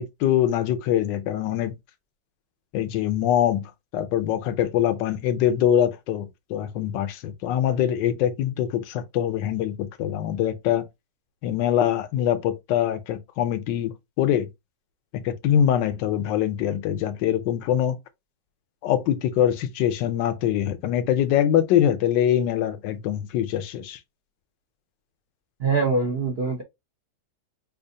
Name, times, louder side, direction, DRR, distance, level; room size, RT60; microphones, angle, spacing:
voice 1, 0.0-1.8 2.7-10.9 11.4-14.5 15.1-18.0 18.8-24.0, left 10 dB, 80° left, 1.3 m, -23 dB
voice 2, 25.6-26.6, right 4 dB, 55° right, 0.6 m, -23 dB
5.0 x 2.4 x 2.7 m
omnidirectional pair, 1.9 m